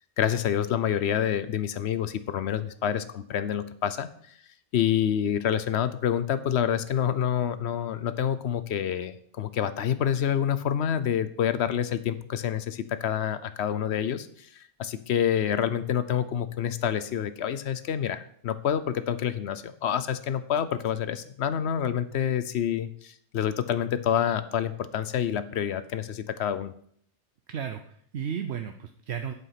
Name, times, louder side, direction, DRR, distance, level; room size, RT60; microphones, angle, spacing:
voice 1, 0.2-4.1 4.7-26.7, left 9 dB, 75° left, 13 dB, 0.9 m, -27 dB
voice 2, 27.5-29.3, right 8 dB, 75° right, 7 dB, 0.9 m, -34 dB
8.1 x 7.9 x 5.8 m, 0.63 s
omnidirectional pair, 1.1 m